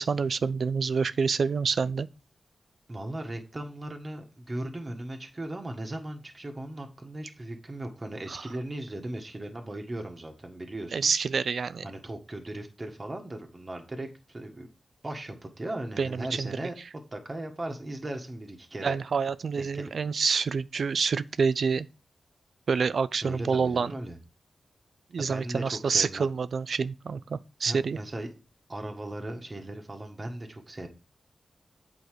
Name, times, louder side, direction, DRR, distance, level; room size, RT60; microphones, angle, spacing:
voice 1, 0.0-2.1 8.3-8.4 10.9-11.8 16.0-16.5 18.8-21.9 22.7-23.9 25.1-28.0, right 5 dB, 70° right, 0.5 m, -27 dB
voice 2, 2.9-11.1 11.8-14.7 15.0-16.7 17.1-19.0 19.6-19.9 23.2-24.2 25.2-26.3 27.6-28.3 28.7-30.9, right 1 dB, 25° right, 1.6 m, -37 dB
8.8 x 4.8 x 4.8 m
wide cardioid pair, 120°, 0 cm